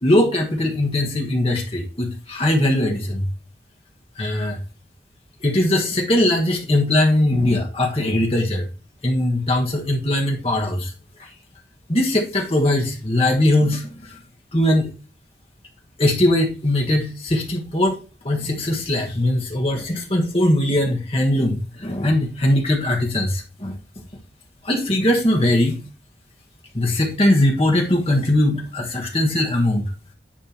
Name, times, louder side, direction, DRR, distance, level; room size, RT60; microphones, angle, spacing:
voice 1, 0.0-3.3 4.2-4.6 5.4-8.7 9.0-10.9 11.2-11.3 11.9-14.2 14.5-14.9 16.0-18.0 18.2-23.8 24.6-25.8 26.7-29.8, left 1 dB, 35° left, 1 dB, 1.5 m, -20 dB
10.0 x 3.4 x 4.3 m, 0.32 s
head